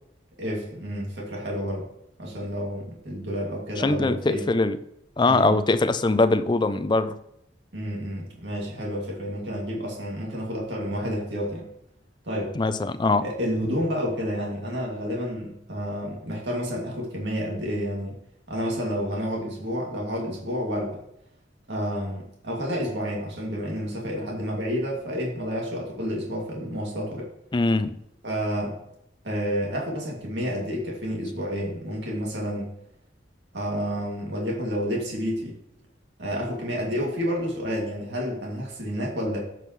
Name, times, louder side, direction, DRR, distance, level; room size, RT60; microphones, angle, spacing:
voice 1, 0.4-1.9 2.2-4.4 5.3-5.6 7.7-11.7 12.2-12.6 13.2-18.1 18.5-21.0 21.7-27.3 28.2-28.8 29.2-32.7 33.5-35.5 36.2-39.4, equal, 75° right, 2.4 m, -30 dB
voice 2, 3.8-4.8 5.2-7.2 12.5-13.3 27.5-28.0, left 2 dB, 25° left, 0.4 m, -22 dB
13.5 x 5.4 x 3.1 m
head